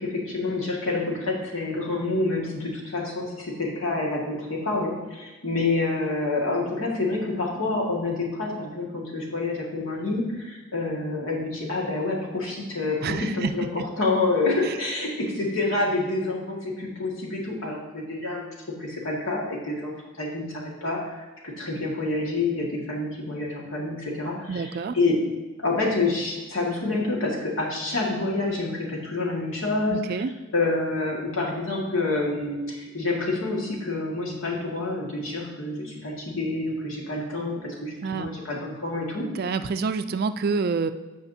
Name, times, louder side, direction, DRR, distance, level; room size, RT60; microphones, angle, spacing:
voice 1, 0.0-18.5 18.8-21.2 21.4-25.2 25.6-30.2 30.5-39.3, left 2 dB, 75° left, -3 dB, 1.9 m, -28 dB
voice 2, 13.0-13.5 14.7-14.8 24.5-25.0 29.9-30.3 38.0-38.3 39.4-40.9, right 4 dB, 45° right, 10 dB, 0.3 m, -27 dB
15.0 x 5.0 x 2.8 m, 1.2 s
head